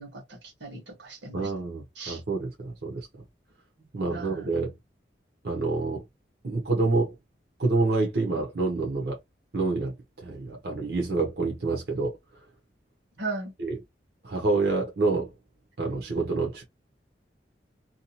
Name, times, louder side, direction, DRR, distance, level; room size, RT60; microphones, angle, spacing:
voice 1, 0.0-1.5 2.0-2.2 4.1-4.5 13.2-13.5, right 3 dB, 80° right, 1.2 m, -37 dB
voice 2, 1.3-3.1 3.9-4.7 5.4-6.0 6.4-7.1 7.6-9.2 9.5-12.2 13.6-13.8 14.2-15.3 15.8-16.6, right 3 dB, 60° right, 0.7 m, -27 dB
2.7 x 2.3 x 2.7 m
head